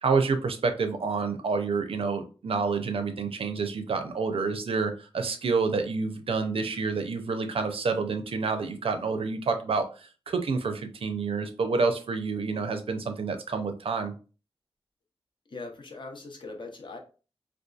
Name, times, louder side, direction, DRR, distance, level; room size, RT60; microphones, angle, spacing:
voice 1, 0.0-14.1, right 4 dB, 70° right, 7 dB, 0.5 m, -28 dB
voice 2, 15.5-17.0, left 3 dB, 50° left, 3 dB, 0.6 m, -40 dB
2.6 x 2.3 x 2.3 m, 0.35 s
wide cardioid pair, 75°, 10 cm